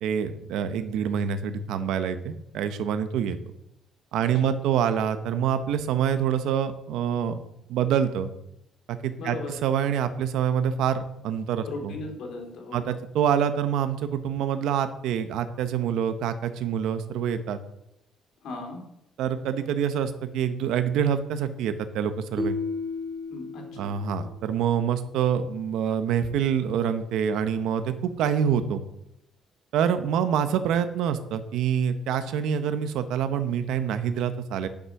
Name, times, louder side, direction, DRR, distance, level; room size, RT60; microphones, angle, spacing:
voice 1, 0.0-3.4 4.1-7.4 7.7-8.3 8.9-9.4 9.6-11.9 12.7-17.6 19.2-22.6 23.8-28.8 29.7-34.7, right 8 dB, 85° right, 10 dB, 1.0 m, -26 dB
voice 2, 4.2-4.5 9.2-9.5 11.7-12.9 18.4-18.8 23.3-23.9, left 3 dB, 65° left, 2 dB, 3.1 m, -37 dB
sound 1, 22.4-24.5, left 3 dB, 10° left, 1.5 m, -33 dB
10.5 x 6.7 x 6.0 m, 0.80 s
cardioid pair, 160°, 0 cm